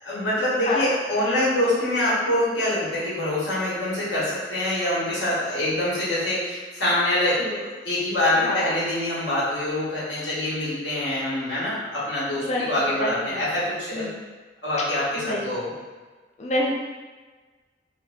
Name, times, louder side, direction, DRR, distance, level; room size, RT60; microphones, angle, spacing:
voice 1, 0.0-14.1 14.6-15.7, left 1 dB, 85° left, -9 dB, 1.4 m, -25 dB
voice 2, 0.7-1.0 7.4-7.6 8.4-8.7 12.4-13.5 13.9-14.2 15.1-15.6 16.4-16.7, left 1 dB, 35° left, -2 dB, 0.3 m, -28 dB
3.2 x 2.1 x 3.4 m, 1.3 s
head